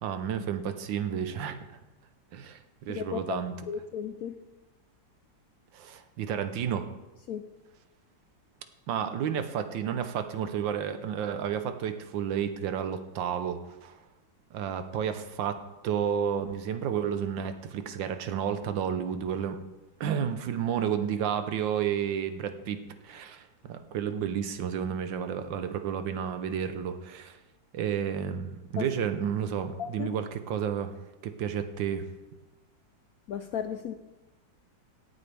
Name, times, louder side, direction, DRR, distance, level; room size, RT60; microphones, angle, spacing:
voice 1, 0.0-1.6 2.3-3.5 5.7-6.9 8.9-14.0 14.5-19.6 20.0-27.4 27.7-31.0 31.2-32.1, right 8 dB, 85° right, 9 dB, 1.6 m, -31 dB
voice 2, 2.9-4.4 7.3-7.4 28.8-28.9 29.8-30.1 33.3-33.9, left 8 dB, 70° left, 8 dB, 0.8 m, -35 dB
17.5 x 8.2 x 3.4 m, 1.1 s
omnidirectional pair, 2.0 m